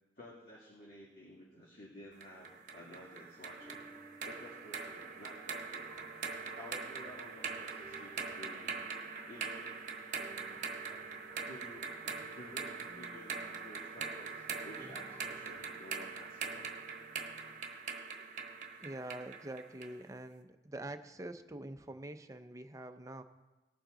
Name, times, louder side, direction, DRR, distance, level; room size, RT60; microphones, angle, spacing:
voice 1, 0.2-5.8 6.5-8.7 9.3-9.8 11.4-11.9 12.3-16.7, left 1 dB, 55° left, -6 dB, 2.2 m, -52 dB
sound 1, 2.2-20.0, right 5 dB, 45° right, 1.0 m, -43 dB
sound 2, 3.4-15.7, right 2 dB, 5° left, 1.8 m, -59 dB
voice 2, 18.8-23.2, right 1 dB, 20° right, 8 dB, 0.5 m, -45 dB
18.5 x 7.4 x 3.8 m, 1.1 s
head